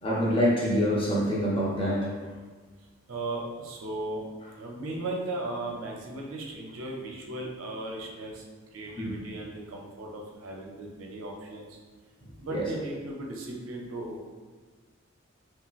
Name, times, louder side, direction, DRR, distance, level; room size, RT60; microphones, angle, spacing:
voice 1, 0.0-2.1 12.5-12.6, equal, 25° left, -4 dB, 0.6 m, -25 dB
voice 2, 3.1-4.2 4.6-8.4 8.7-11.8 12.4-14.3, right 2 dB, 85° right, -1 dB, 0.6 m, -36 dB
3.1 x 2.8 x 2.4 m, 1.4 s
head